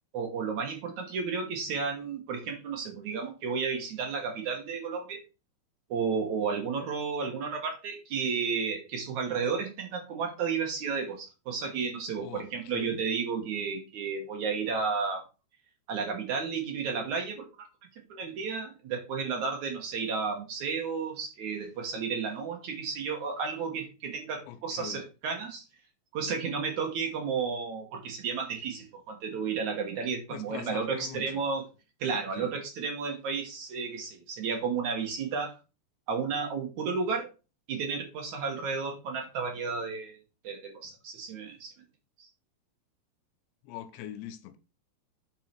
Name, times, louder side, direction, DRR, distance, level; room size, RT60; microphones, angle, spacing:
voice 1, 0.1-5.2 5.9-15.2 15.9-17.7 18.1-25.6 26.1-31.6 32.0-35.6 36.1-37.3 37.7-40.2 40.4-41.7 42.2-42.3, right 5 dB, 60° right, 2.1 m, -32 dB
voice 2, 12.2-13.0 24.5-25.0 30.3-31.4 32.1-32.5 43.6-44.6, left 10 dB, 85° left, 3.1 m, -43 dB
9.7 x 4.7 x 4.4 m
omnidirectional pair, 5.2 m